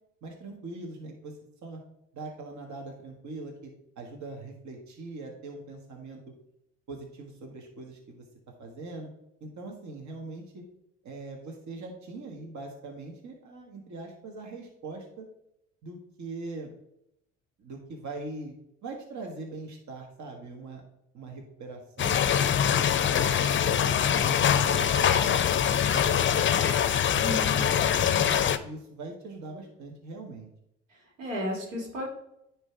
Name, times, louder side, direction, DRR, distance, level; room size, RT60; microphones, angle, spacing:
voice 1, 0.2-1.3 1.6-1.8 2.1-6.3 6.9-8.2 8.6-9.1 9.4-10.6 11.0-15.3 15.8-16.7 17.6-18.5 18.8-20.8 21.1-22.9 23.4-26.6 27.1-30.5, right 3 dB, 50° right, 1 dB, 1.8 m, -42 dB
sound 1, 22.0-28.6, left 9 dB, 35° left, 0.6 m, -24 dB
voice 2, 27.2-27.6 30.9-32.1, left 1 dB, 90° right, -2 dB, 2.2 m, -34 dB
9.7 x 3.4 x 4.6 m, 0.80 s
hypercardioid pair, 55°, 36 cm